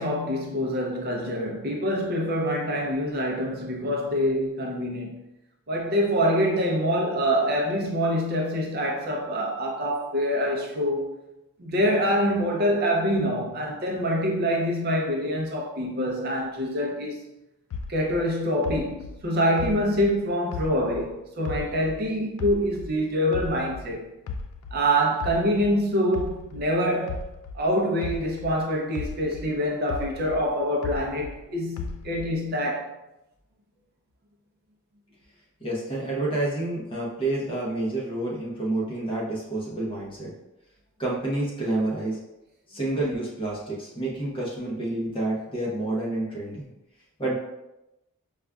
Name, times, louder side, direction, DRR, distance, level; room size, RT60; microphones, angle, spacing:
voice 1, 0.0-5.2 5.7-11.1 11.6-17.2 17.9-24.1 24.7-27.3 27.5-32.9, equal, 45° right, -1 dB, 0.5 m, -25 dB
sound 1, 17.7-21.1 21.5-23.9 24.3-28.6 29.0-31.4 31.8-32.5, left 4 dB, 85° left, 0.4 m, -36 dB
voice 2, 35.6-40.3 41.0-42.2 42.7-46.7 47.2-47.3, right 2 dB, 25° left, -4 dB, 0.8 m, -29 dB
5.0 x 2.3 x 2.3 m, 0.93 s
head